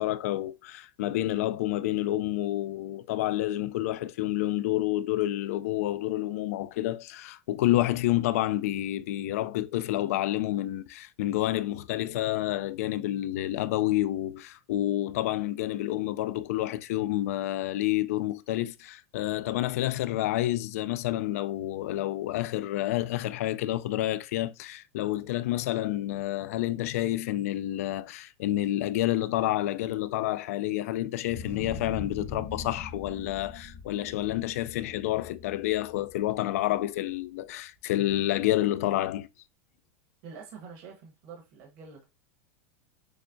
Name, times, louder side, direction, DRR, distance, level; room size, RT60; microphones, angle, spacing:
voice 1, 0.0-39.3, left 14 dB, 70° left, 0.4 m, -29 dB
sound 1, 31.3-36.8, left 5 dB, 30° left, 0.8 m, -42 dB
voice 2, 40.2-42.1, right 5 dB, 50° right, 1.3 m, -46 dB
6.4 x 2.1 x 2.6 m
supercardioid pair, 155°, 8 cm